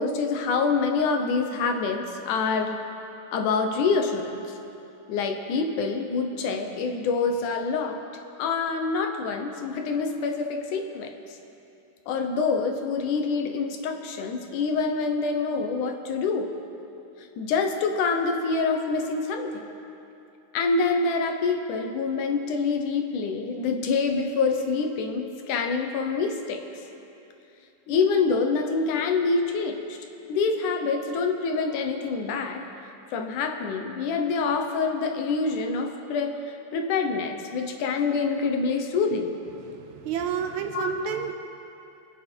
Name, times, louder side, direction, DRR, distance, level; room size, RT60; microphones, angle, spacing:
voice 1, 0.0-2.8 3.3-4.5 5.1-8.0 8.4-11.1 12.1-16.5 17.4-19.7 20.5-26.6 27.9-30.0 30.3-32.6 33.1-39.3 40.7-41.1, left 4 dB, 75° left, 4 dB, 2.5 m, -26 dB
voice 2, 39.7-41.3, right 7 dB, 75° right, 6 dB, 2.0 m, -30 dB
27.5 x 9.6 x 4.6 m, 2.8 s
omnidirectional pair, 3.7 m